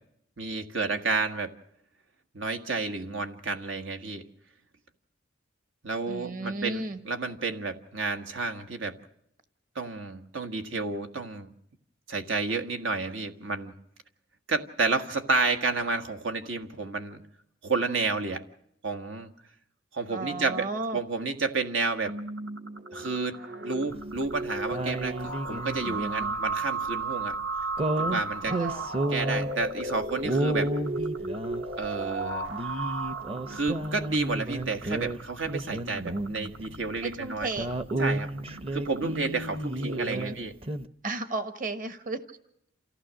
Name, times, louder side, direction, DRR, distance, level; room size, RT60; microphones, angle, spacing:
voice 1, 0.4-1.5 2.3-4.2 5.8-9.0 9.7-11.5 12.1-13.7 14.5-17.2 17.6-18.4 18.8-19.3 19.9-20.7 20.9-22.2 22.9-27.3 28.0-28.6 29.1-30.7 31.8-32.5 33.5-37.5 38.0-38.3 38.7-40.5, right 3 dB, 90° right, 5 dB, 1.6 m, -30 dB
voice 2, 6.1-7.0 20.1-21.0 28.5-28.9 37.0-37.7 40.1-40.3 41.0-42.2, right 2 dB, 45° right, 8 dB, 1.3 m, -34 dB
sound 1, 22.0-40.2, right 3 dB, 70° right, 1.2 m, -35 dB
sound 2, 23.9-24.3 24.7-26.5 27.8-29.7 30.2-32.0 32.5-35.2 35.4-36.7 37.0-37.1 37.4-40.4 40.6-40.9, right 1 dB, 30° right, 0.7 m, -32 dB
28.5 x 15.5 x 6.4 m, 0.73 s
head